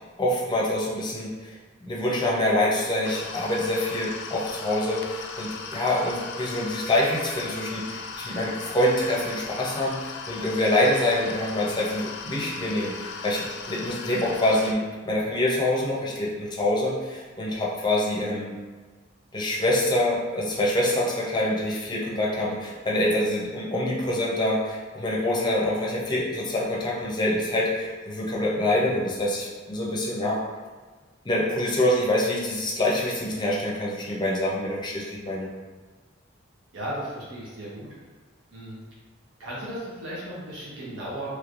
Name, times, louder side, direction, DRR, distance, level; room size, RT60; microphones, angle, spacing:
voice 1, 0.2-18.6 19.3-30.4 31.2-35.5, left 1 dB, 25° left, -4 dB, 0.6 m, -26 dB
sound 1, 3.0-14.7, left 5 dB, 60° left, 0.3 m, -38 dB
voice 2, 36.7-37.9 38.5-38.8 39.4-41.3, right 1 dB, 70° right, -7 dB, 0.9 m, -35 dB
3.1 x 3.1 x 2.5 m, 1.4 s
head